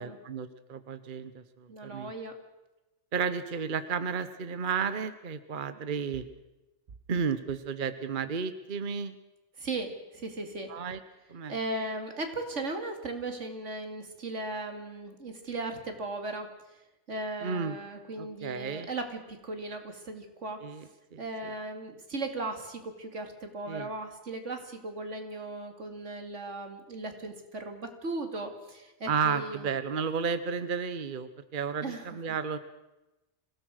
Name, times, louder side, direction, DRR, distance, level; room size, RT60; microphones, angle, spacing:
voice 1, 0.0-2.1 3.1-6.3 7.1-9.1 10.7-11.0 11.3-11.5 17.4-17.8 18.2-18.9 20.6-21.5 23.7-23.9 29.1-32.6, right 6 dB, 45° right, 12 dB, 1.1 m, -33 dB
voice 2, 1.7-2.4 9.6-10.7 11.5-16.5 17.1-20.6 21.2-29.7 31.8-32.4, right 2 dB, 85° right, 6 dB, 2.8 m, -37 dB
26.0 x 17.0 x 6.4 m, 1.0 s
omnidirectional pair, 1.2 m